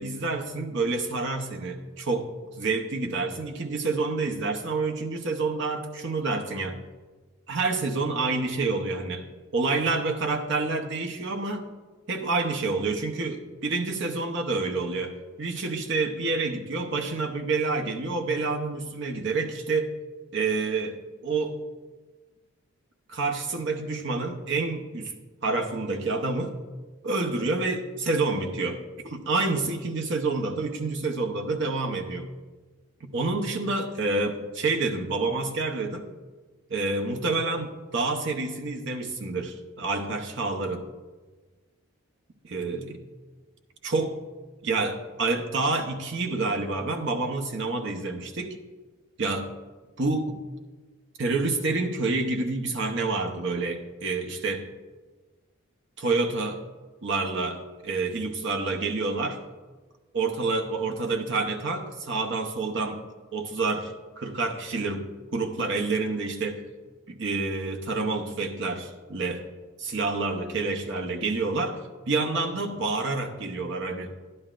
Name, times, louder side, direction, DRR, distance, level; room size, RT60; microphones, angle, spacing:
voice 1, 0.0-2.3 2.5-6.8 7.5-9.2 9.5-11.7 12.1-19.9 20.3-21.6 23.1-25.1 25.4-26.6 27.0-32.3 33.1-36.0 36.7-40.9 42.5-43.0 43.8-44.2 44.6-48.6 49.2-49.5 50.0-50.4 51.2-54.7 56.0-56.6 57.0-59.4 60.1-63.0 63.3-66.6 67.1-69.4 69.8-71.8 72.1-74.1, right 3 dB, 55° right, 4 dB, 0.8 m, -28 dB
11.0 x 11.0 x 2.5 m, 1.3 s
head